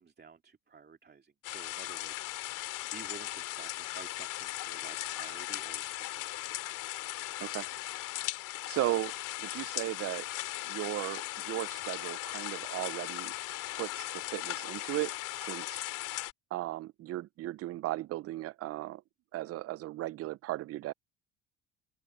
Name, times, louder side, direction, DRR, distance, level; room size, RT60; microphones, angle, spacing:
voice 1, 0.0-6.5, right 5 dB, 30° right, 2.6 m, -52 dB
sound 1, 1.4-16.3, left 16 dB, 65° left, 2.6 m, -38 dB
voice 2, 8.6-9.1 9.4-10.3 10.6-13.3 13.7-15.1 15.4-15.8 16.5-19.0 19.3-20.9, right 16 dB, 45° right, 0.5 m, -36 dB
open air
hypercardioid pair, 75°, 33 cm